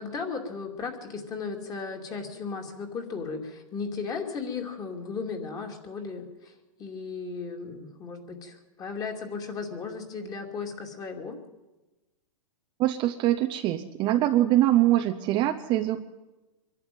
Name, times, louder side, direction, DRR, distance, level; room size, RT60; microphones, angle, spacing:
voice 1, 0.0-11.4, left 5 dB, 20° left, 4 dB, 2.6 m, -36 dB
voice 2, 12.8-16.0, right 14 dB, 25° right, 6 dB, 0.7 m, -23 dB
24.0 x 11.5 x 9.2 m, 1.1 s
hypercardioid pair, 155°, 19 cm